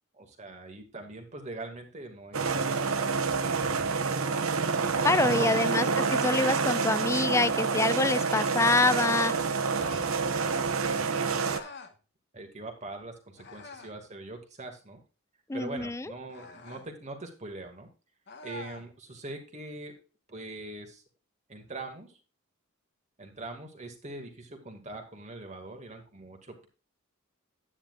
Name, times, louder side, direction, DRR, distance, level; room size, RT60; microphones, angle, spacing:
voice 1, 0.2-3.2 5.2-5.7 10.4-11.7 12.3-15.0 15.5-17.9 18.4-20.0 20.3-21.0 21.5-22.2 23.2-26.7, right 2 dB, 35° right, 2.3 m, -42 dB
sound 1, 2.3-11.6, right 5 dB, 85° right, 1.1 m, -28 dB
voice 2, 5.0-9.3 15.5-16.1, left 3 dB, 15° left, 0.4 m, -26 dB
sound 2, 6.6-7.2 8.2-8.7 9.7-10.2 11.4-12.0 13.4-14.0 16.3-16.9 18.3-18.9, left 4 dB, 55° left, 1.4 m, -46 dB
10.5 x 9.8 x 2.5 m
head